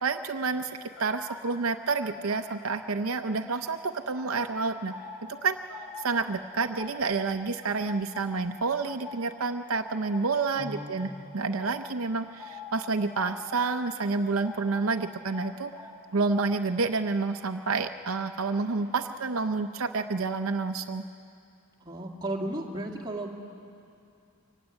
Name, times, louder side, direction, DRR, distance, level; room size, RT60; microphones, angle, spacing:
voice 1, 0.0-4.9 5.4-5.6 6.0-15.7 16.1-21.0, right 4 dB, 75° right, 7 dB, 0.7 m, -29 dB
sound 1, 0.8-3.0 3.3-18.2 18.4-18.7, left 4 dB, ahead, 3.0 m, -47 dB
voice 2, 10.5-11.1 21.8-23.4, right 1 dB, 20° right, -1 dB, 2.1 m, -35 dB
23.5 x 16.0 x 9.8 m, 2.6 s
head